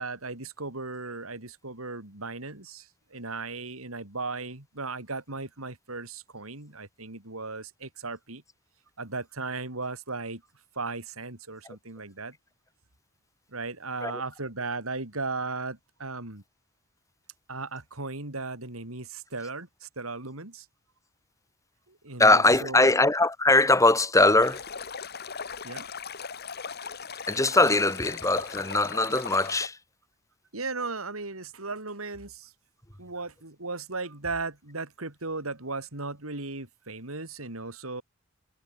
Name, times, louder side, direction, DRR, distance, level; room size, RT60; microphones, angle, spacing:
voice 1, 0.0-8.4 9.0-10.4 10.8-12.4 13.5-16.4 17.5-20.7 21.9-23.0 25.6-25.9 30.5-32.5 33.0-38.0, right 3 dB, 90° right, 4.1 m, -36 dB
voice 2, 22.2-24.6 27.3-29.8, left 2 dB, 15° left, 3.3 m, -21 dB
Stream, 24.4-29.7, left 6 dB, 50° left, 2.6 m, -38 dB
head